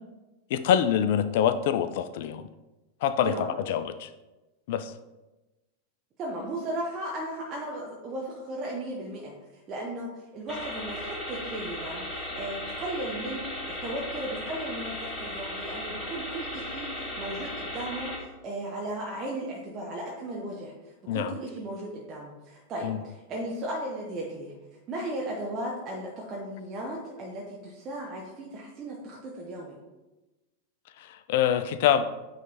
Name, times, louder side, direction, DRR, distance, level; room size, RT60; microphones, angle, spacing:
voice 1, 0.5-2.5 3.0-3.3 3.7-4.1 4.7-4.9 21.1-21.4 22.8-23.0 31.0-32.0, left 9 dB, 50° left, 13 dB, 0.4 m, -25 dB
voice 2, 6.2-9.3 9.7-16.9 17.2-18.1 18.4-24.5 24.9-29.8, right 1 dB, 30° right, -2 dB, 1.1 m, -36 dB
sound 1, 10.5-18.2, left 1 dB, 15° left, 1.8 m, -36 dB
9.2 x 3.3 x 4.0 m, 1.1 s
figure-of-eight pair, 90°, 0 cm